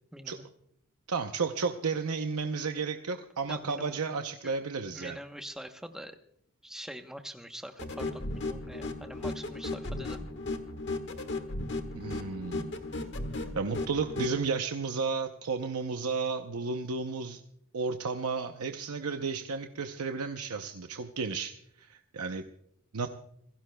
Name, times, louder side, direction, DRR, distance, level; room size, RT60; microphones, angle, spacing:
voice 1, 0.1-0.4 3.5-4.0 4.4-4.5 4.9-6.2 6.6-10.2, equal, ahead, 5 dB, 0.9 m, -44 dB
voice 2, 1.1-5.2 11.9-12.8 13.5-17.4 17.7-22.4 22.9-23.1, right 4 dB, 85° right, 6 dB, 0.7 m, -33 dB
sound 1, 7.8-14.3, left 2 dB, 50° left, 1.4 m, -36 dB
27.5 x 16.0 x 2.3 m, 0.71 s
head